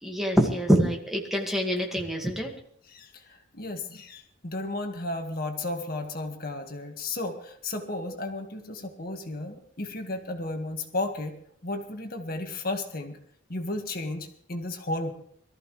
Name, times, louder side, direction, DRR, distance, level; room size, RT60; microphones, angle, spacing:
voice 1, 0.0-2.5, equal, ahead, 1 dB, 2.1 m, -25 dB
voice 2, 2.9-11.4 11.6-13.2 13.5-15.1, left 2 dB, 50° left, 4 dB, 1.9 m, -34 dB
22.5 x 14.0 x 3.3 m, 0.64 s
head